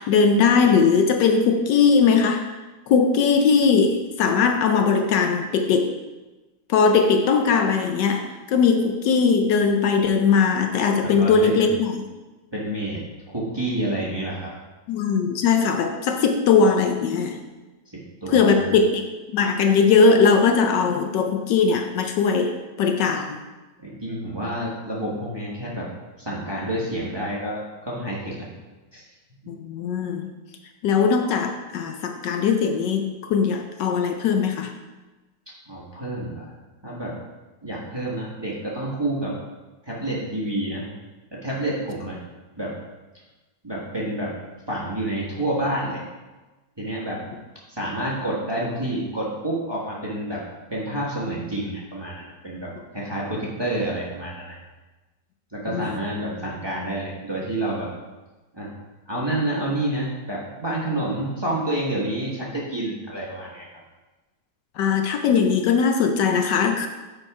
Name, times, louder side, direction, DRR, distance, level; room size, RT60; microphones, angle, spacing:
voice 1, 0.0-2.4 2.9-5.9 6.7-12.0 14.9-17.4 18.3-19.0 19.3-23.4 29.5-30.3 30.8-34.7 55.7-56.0 64.8-66.9, left 5 dB, 75° left, 5 dB, 1.2 m, -20 dB
voice 2, 11.0-11.7 12.5-14.5 17.9-18.7 23.8-25.9 26.2-28.5 28.9-29.0 35.7-36.5 36.8-37.2 37.6-39.3 39.8-40.9 41.3-42.2 42.6-42.8 43.6-44.3 44.7-46.0 46.8-47.2 47.7-50.4 50.7-54.6 55.5-57.9 58.5-58.7 59.1-63.7, right 1 dB, 15° right, -5 dB, 1.2 m, -28 dB
6.4 x 5.2 x 4.7 m, 1.2 s
omnidirectional pair, 2.0 m